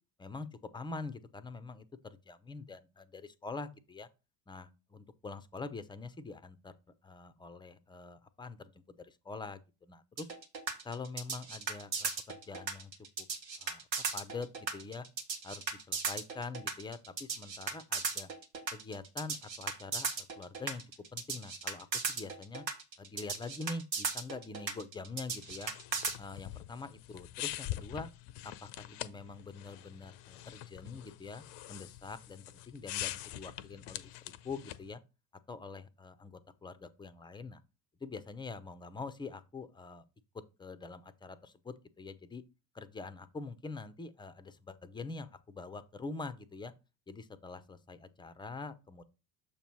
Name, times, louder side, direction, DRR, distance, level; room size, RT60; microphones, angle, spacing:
voice 1, 0.7-4.1 4.5-6.7 7.0-8.7 9.0-9.6 9.9-10.3 10.8-12.9 13.2-13.3 13.6-13.8 14.1-15.1 15.4-18.3 18.7-20.8 21.1-22.6 23.0-25.7 26.2-28.1 28.4-34.1 34.4-35.0 35.5-37.6 38.0-40.0 40.6-42.4 42.7-46.7 47.1-49.0, left 3 dB, 10° left, 0.6 m, -45 dB
sound 1, 10.2-26.2, right 5 dB, 85° right, 1.2 m, -36 dB
sound 2, 25.3-34.9, left 14 dB, 55° left, 0.7 m, -44 dB
6.7 x 3.0 x 5.9 m
hypercardioid pair, 65°, 50 cm